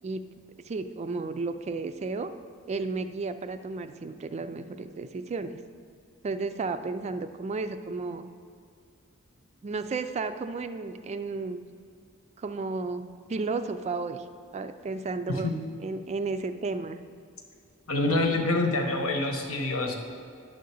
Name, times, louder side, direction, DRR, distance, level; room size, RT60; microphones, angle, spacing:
voice 1, 0.6-2.3 2.7-5.6 6.2-8.2 9.6-11.6 12.4-13.0 13.3-14.3 14.5-15.5 15.8-17.0, right 3 dB, 30° right, 10 dB, 0.3 m, -33 dB
voice 2, 17.9-19.9, left 2 dB, 80° left, 2 dB, 1.1 m, -26 dB
10.0 x 3.8 x 6.9 m, 2.4 s
head